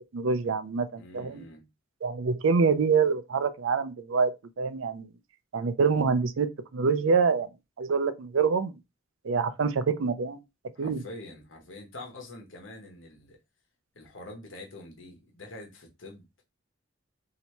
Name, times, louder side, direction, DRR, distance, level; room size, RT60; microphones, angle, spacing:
voice 1, 0.1-1.4 2.0-4.3 4.6-5.1 5.5-7.5 7.8-8.7 9.2-10.4 10.8-11.0, right 5 dB, 80° right, 0.5 m, -26 dB
voice 2, 0.9-1.7 10.7-13.4 13.9-16.2, left 2 dB, 75° left, 1.1 m, -45 dB
3.2 x 2.8 x 2.9 m
head